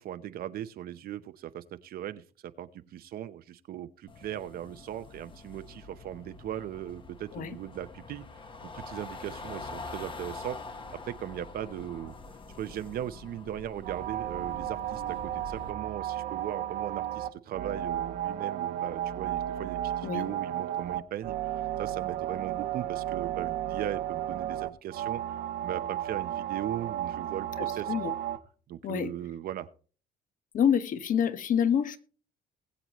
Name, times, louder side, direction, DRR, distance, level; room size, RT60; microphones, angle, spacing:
voice 1, 0.0-8.2 8.7-10.6 10.9-12.1 12.6-21.3 21.8-25.2 25.6-28.1 28.7-29.7, right 11 dB, 60° right, 11 dB, 0.7 m, -38 dB
sound 1, 4.1-15.7, left 3 dB, 30° left, 1.2 m, -45 dB
sound 2, 13.8-28.4, right 12 dB, 90° right, 1.2 m, -33 dB
voice 2, 27.6-28.1 28.8-29.1 30.5-32.0, left 8 dB, 50° left, 11 dB, 1.2 m, -27 dB
20.0 x 7.9 x 3.0 m, 0.40 s
cardioid pair, 110°, 17 cm